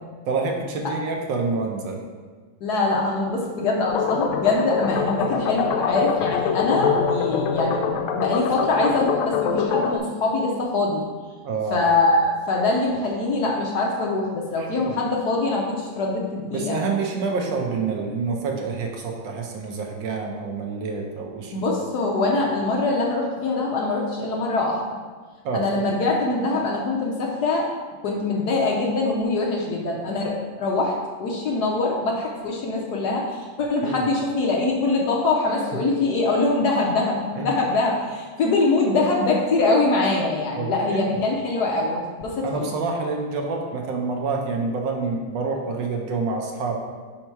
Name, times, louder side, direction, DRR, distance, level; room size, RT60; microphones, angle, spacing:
voice 1, 0.3-2.0 11.4-11.9 14.6-15.0 16.5-21.6 25.4-25.7 33.8-34.1 37.3-37.5 40.6-41.2 42.4-46.8, right 4 dB, 70° right, 1 dB, 1.4 m, -27 dB
voice 2, 2.6-11.0 11.7-16.8 21.5-24.8 25.5-27.7 28.0-42.4, left 3 dB, 65° left, -2 dB, 1.1 m, -23 dB
sound 1, 3.9-10.0, left 6 dB, 80° left, 1.4 m, -24 dB
5.5 x 4.4 x 4.6 m, 1.4 s
omnidirectional pair, 2.2 m